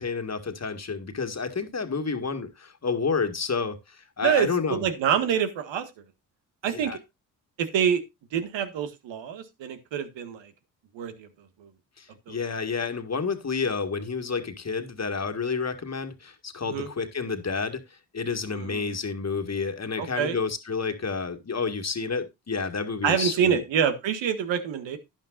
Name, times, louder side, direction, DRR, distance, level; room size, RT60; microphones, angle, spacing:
voice 1, 0.0-4.9 6.7-7.0 12.0-17.8 18.1-23.6, left 5 dB, 35° left, 1.9 m, -30 dB
voice 2, 4.2-5.8 6.6-7.0 7.6-8.0 8.3-10.4 10.9-11.3 12.3-12.4 16.7-16.9 18.5-18.9 20.0-20.4 23.0-25.0, right 8 dB, 75° right, 1.7 m, -26 dB
11.5 x 10.5 x 2.5 m
hypercardioid pair, 50°, 45 cm